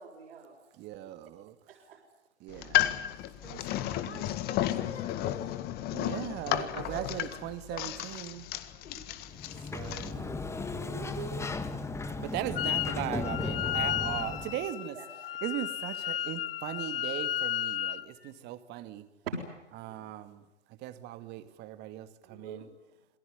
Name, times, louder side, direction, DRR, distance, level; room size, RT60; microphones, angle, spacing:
voice 1, 0.0-0.6 1.7-2.0 6.5-7.1 10.9-11.8 14.9-15.1 19.9-20.0 22.2-22.7, right 6 dB, 65° right, -2 dB, 6.5 m, -45 dB
voice 2, 0.8-1.6 2.4-3.0 3.4-3.6 3.9-4.4 5.9-8.5 9.7-11.1 12.2-15.0 15.4-19.1 19.8-20.4 20.8-22.7, right 13 dB, 30° right, 11 dB, 2.2 m, -39 dB
sound 1, 2.5-10.1, left 13 dB, 30° left, 1.7 m, -33 dB
voice 3, 3.4-5.6 6.9-7.4 7.7-7.8 8.7-9.7, left 6 dB, 70° left, 3 dB, 6.9 m, -48 dB
Sliding door, 9.3-14.7, left 3 dB, 10° left, 1.8 m, -36 dB
Wind instrument woodwind instrument, 12.6-13.0 13.2-18.0, left 11 dB, 55° left, 1.4 m, -33 dB
28.0 x 19.5 x 9.5 m, 0.96 s
hypercardioid pair, 120°, 34 cm